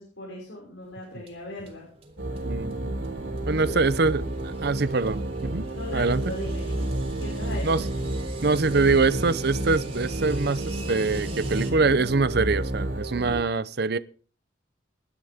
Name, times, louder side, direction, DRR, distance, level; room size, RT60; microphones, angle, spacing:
voice 1, 0.0-1.9 3.5-3.8 5.7-6.9 7.2-7.8, left 1 dB, 85° left, -4 dB, 5.9 m, -38 dB
sound 1, 0.8-11.7, right 1 dB, 35° right, 3.7 m, -42 dB
sound 2, 2.2-13.4, right 1 dB, 75° right, 3.6 m, -31 dB
voice 2, 2.5-2.9 3.5-5.7 5.9-6.2 7.6-7.9 8.4-14.0, right 3 dB, 60° right, 16 dB, 0.7 m, -24 dB
18.5 x 11.5 x 3.6 m, 0.42 s
head